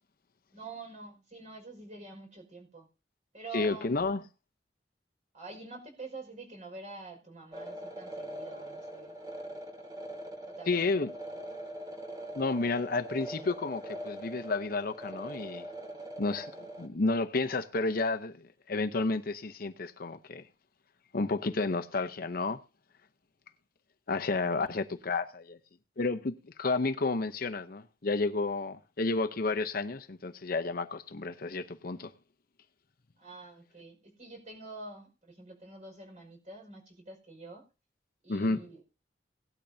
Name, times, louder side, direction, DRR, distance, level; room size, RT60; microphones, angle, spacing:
voice 1, 0.5-2.9 3.3-3.9 5.3-9.2 10.5-11.3 24.5-24.7 33.2-37.6 38.2-38.8, right 3 dB, 45° right, 5.5 m, -47 dB
voice 2, 3.5-4.2 10.7-11.1 12.4-15.7 16.2-16.5 16.8-18.4 18.7-20.4 21.1-22.6 24.1-25.6 26.0-32.1 38.3-38.6, left 3 dB, 55° left, 0.8 m, -31 dB
sound 1, 7.5-16.9, right 1 dB, 25° right, 2.3 m, -42 dB
18.0 x 12.0 x 2.8 m
head